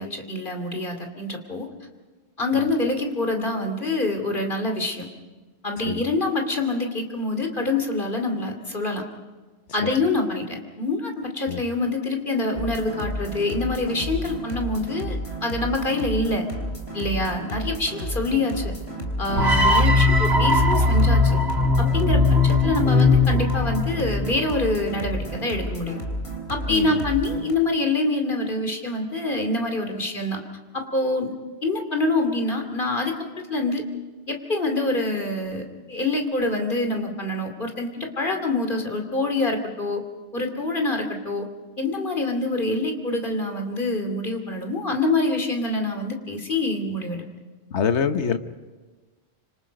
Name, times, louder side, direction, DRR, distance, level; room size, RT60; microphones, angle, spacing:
voice 1, 0.0-1.7 2.4-5.1 5.6-9.0 9.7-16.4 16.9-18.7 19.2-21.4 21.8-26.0 26.5-30.4 30.7-31.3 31.6-33.1 33.5-33.8 34.3-40.0 40.3-41.5 41.8-47.2, left 2 dB, 50° left, 4 dB, 2.8 m, -26 dB
sound 1, 12.6-27.5, right 1 dB, 65° left, 3.8 m, -32 dB
voice 2, 19.3-19.6 22.1-22.3 26.7-27.0 47.7-48.4, left 6 dB, 85° left, 9 dB, 1.3 m, -26 dB
sound 2, 19.4-24.5, left 2 dB, 65° right, 2.0 m, -19 dB
26.5 x 25.5 x 5.3 m, 1.3 s
omnidirectional pair, 1.1 m